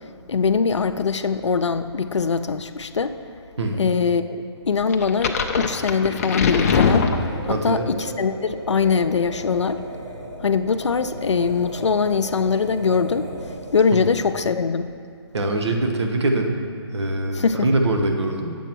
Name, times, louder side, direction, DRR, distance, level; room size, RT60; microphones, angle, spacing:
voice 1, 0.3-3.1 3.8-4.4 4.7-7.1 7.4-9.8 10.4-13.3 13.7-14.9 17.3-17.7, left 5 dB, 90° left, 10 dB, 0.5 m, -22 dB
voice 2, 3.6-3.9 7.5-7.9 15.3-16.6 16.9-18.6, right 2 dB, 75° right, 3 dB, 1.2 m, -23 dB
sound 1, 4.9-7.8, left 5 dB, 35° left, 0.5 m, -22 dB
sound 2, 6.6-14.0, right 1 dB, 45° right, 1.2 m, -36 dB
8.9 x 7.0 x 4.6 m, 2.2 s
hypercardioid pair, 160°, 14 cm